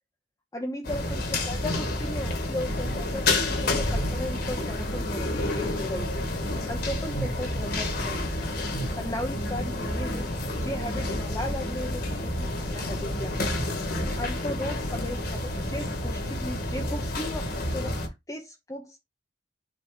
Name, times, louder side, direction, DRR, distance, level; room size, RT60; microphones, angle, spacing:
voice 1, 0.5-8.5 8.8-10.3 10.6-13.6 14.2-19.0, left 1 dB, 20° left, 0.8 m, -36 dB
sound 1, 0.8-18.1, left 1 dB, 55° left, 1.8 m, -29 dB
6.3 x 3.1 x 4.9 m
head